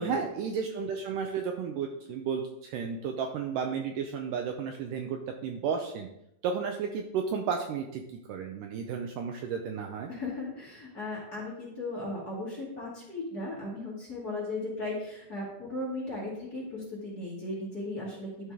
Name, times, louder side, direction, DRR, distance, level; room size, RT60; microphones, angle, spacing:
voice 1, 0.0-6.1 6.4-8.0 8.3-10.1, right 6 dB, 90° right, 3 dB, 1.9 m, -33 dB
voice 2, 10.1-18.5, left 2 dB, 30° left, -5 dB, 2.1 m, -36 dB
12.5 x 4.7 x 3.7 m, 0.81 s
omnidirectional pair, 4.5 m